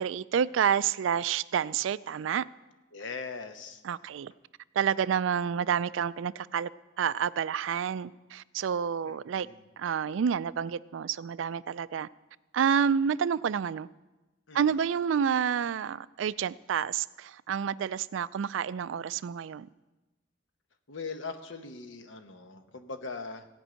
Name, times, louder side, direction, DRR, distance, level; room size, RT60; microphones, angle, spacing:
voice 1, 0.0-2.5 3.8-4.3 4.8-6.7 7.0-9.5 9.8-12.1 12.5-13.9 14.5-19.7, right 7 dB, 80° right, 0.3 m, -29 dB
voice 2, 2.9-3.8 9.1-9.6 14.5-14.6 20.9-23.5, left 4 dB, 80° left, 1.0 m, -40 dB
16.0 x 5.4 x 8.9 m
head